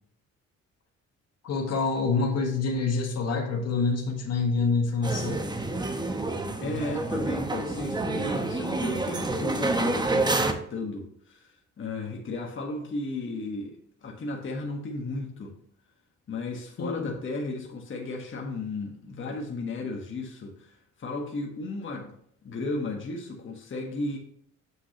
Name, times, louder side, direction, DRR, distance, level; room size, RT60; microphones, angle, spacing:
voice 1, 1.4-5.4 16.8-17.1, left 4 dB, 55° left, 3 dB, 1.5 m, -26 dB
sound 1, 5.0-10.5, right 2 dB, 15° right, 0.9 m, -28 dB
voice 2, 6.6-15.6 16.3-24.2, left 2 dB, 40° left, 1 dB, 1.4 m, -35 dB
7.9 x 5.9 x 2.9 m, 0.68 s
cardioid pair, 90°, 30 cm